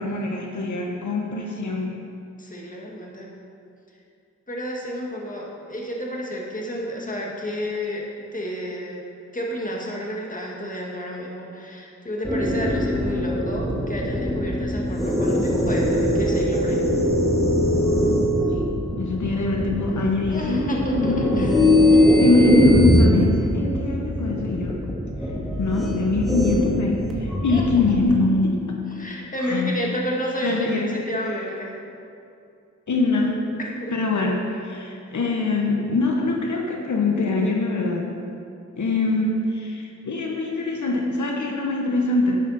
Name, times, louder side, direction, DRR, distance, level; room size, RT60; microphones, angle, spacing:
voice 1, 0.0-1.9 18.5-18.6 19.0-21.8 22.2-24.8 25.6-28.8 29.4-29.7 30.4-30.9 32.9-33.4 33.9-38.0 38.8-42.4, left 2 dB, 85° left, 0 dB, 1.2 m, -23 dB
voice 2, 2.4-3.3 4.5-8.1 8.3-9.0 9.3-16.8 20.3-22.4 27.5-28.0 28.9-31.8 33.6-33.9, equal, 30° left, -2 dB, 1.9 m, -30 dB
sound 1, 12.2-28.0, left 1 dB, ahead, 1.7 m, -21 dB
11.0 x 9.3 x 4.2 m, 2.5 s
wide cardioid pair, 90°, 29 cm